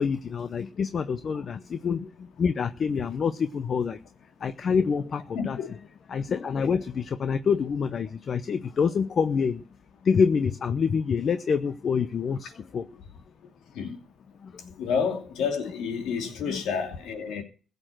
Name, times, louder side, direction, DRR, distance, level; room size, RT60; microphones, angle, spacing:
voice 1, 0.0-4.0 4.4-5.7 6.1-9.6 10.0-12.9 14.4-14.9 16.5-16.6, left 6 dB, 50° left, 0.7 m, -27 dB
voice 2, 5.3-5.7 13.7-14.0 14.8-17.4, left 6 dB, 85° left, 2.7 m, -29 dB
16.0 x 6.8 x 7.7 m
cardioid pair, 90°, 0 cm